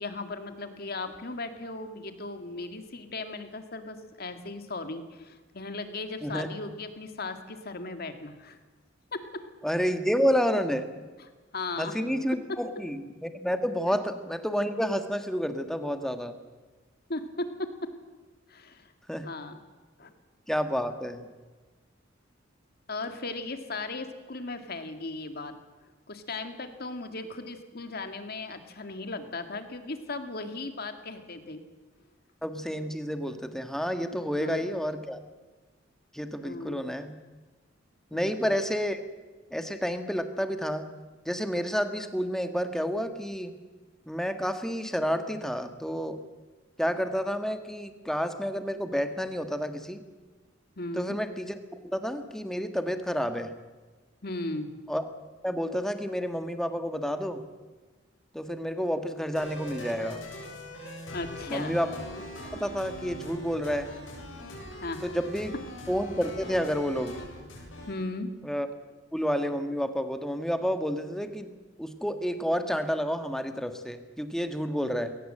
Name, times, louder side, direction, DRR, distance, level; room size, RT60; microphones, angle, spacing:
voice 1, 0.0-8.6 9.1-9.4 11.2-11.9 12.5-12.6 17.1-17.9 18.5-18.9 19.2-19.6 20.0-20.1 22.9-25.5 26.1-31.6 34.3-34.8 36.4-36.9 38.1-38.6 50.8-51.2 54.2-54.7 61.1-61.8 64.8-65.1 67.9-68.3, left 2 dB, 55° left, 8 dB, 2.2 m, -37 dB
voice 2, 9.6-10.9 11.8-16.3 19.1-19.3 20.5-21.3 32.4-35.2 36.1-37.2 38.1-39.0 39.5-40.8 41.2-43.6 44.1-46.2 46.8-50.0 50.9-51.6 51.9-53.5 54.9-55.1 55.4-57.4 58.3-60.2 61.5-61.9 62.5-63.9 65.0-65.5 65.9-67.2 68.4-68.7 69.1-75.1, equal, 5° left, 8 dB, 1.5 m, -30 dB
sound 1, 59.4-67.9, left 1 dB, 85° left, 7.3 m, -42 dB
21.5 x 18.5 x 7.7 m, 1.3 s
head